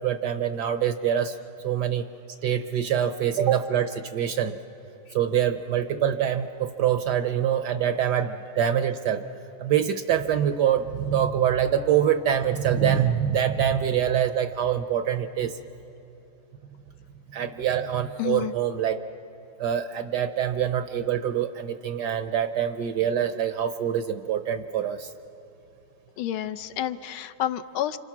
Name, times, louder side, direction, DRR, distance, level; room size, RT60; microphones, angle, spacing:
voice 1, 0.0-1.4 1.6-2.0 2.4-4.6 5.1-9.2 9.6-15.6 17.3-19.0 19.6-25.1, right 9 dB, 65° right, 9 dB, 1.1 m, -25 dB
voice 2, 18.2-18.5 26.2-28.0, left 11 dB, 80° left, 9 dB, 1.6 m, -29 dB
29.0 x 26.0 x 6.0 m, 3.0 s
omnidirectional pair, 2.3 m